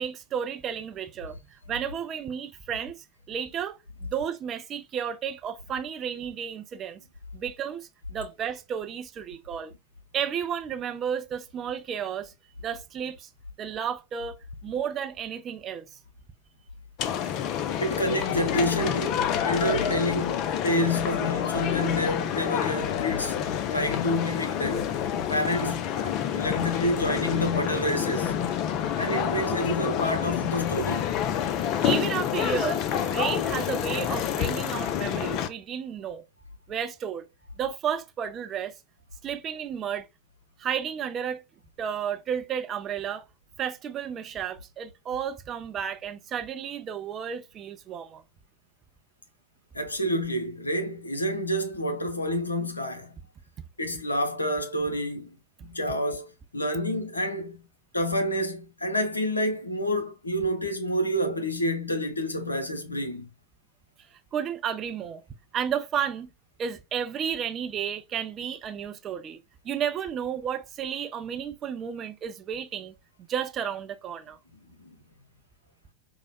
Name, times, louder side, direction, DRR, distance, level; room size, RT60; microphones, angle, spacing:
voice 1, 0.0-7.0 7.3-9.7 10.1-12.3 12.6-13.3 13.6-14.4 14.6-16.0 31.8-36.2 36.7-37.2 37.6-38.7 39.2-40.1 40.6-41.4 41.8-43.2 43.6-48.2 64.1-65.2 65.5-66.3 66.6-69.4 69.6-74.4, right 8 dB, 30° right, 0.4 m, -32 dB
sound 1, 17.0-35.5, left 9 dB, 40° left, 0.4 m, -28 dB
voice 2, 17.8-23.3 23.7-24.9 25.3-28.3 29.0-31.1 49.7-53.1 53.8-55.4 55.6-57.6 57.9-63.3 74.8-74.9, equal, 80° left, 0.6 m, -28 dB
4.6 x 2.0 x 2.2 m
figure-of-eight pair, 90°, 0 cm